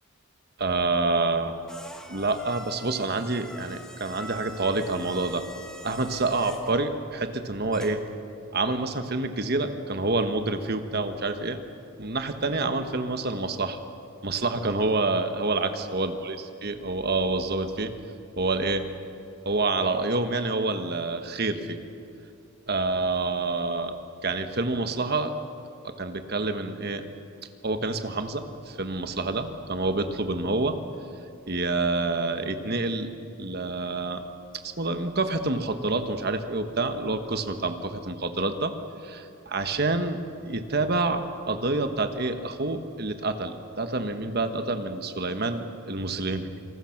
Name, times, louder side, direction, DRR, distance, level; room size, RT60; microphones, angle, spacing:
voice 1, 0.6-1.6 2.1-5.4 5.8-8.0 8.5-11.6 12.0-13.8 14.2-16.3 16.6-17.9 18.4-18.8 19.4-21.8 22.7-23.9 24.2-25.3 25.8-27.0 27.6-30.8 31.5-34.2 34.6-38.7 39.0-40.2 40.4-46.5, right 3 dB, 45° right, 8 dB, 1.4 m, -27 dB
sound 1, 1.6-8.2, equal, 5° left, 1.4 m, -45 dB
27.0 x 20.0 x 6.0 m, 2.7 s
head